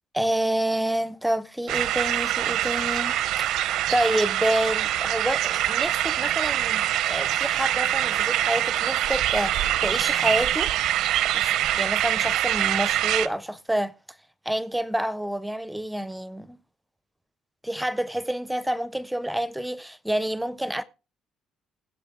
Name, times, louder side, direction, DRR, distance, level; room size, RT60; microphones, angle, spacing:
voice 1, 0.1-10.7 11.3-13.9 14.5-16.6 17.6-20.8, right 1 dB, 5° right, 0.5 m, -28 dB
sound 1, 1.7-13.3, right 13 dB, 80° right, 0.7 m, -24 dB
21.0 x 7.8 x 3.5 m
cardioid pair, 175°, 0 cm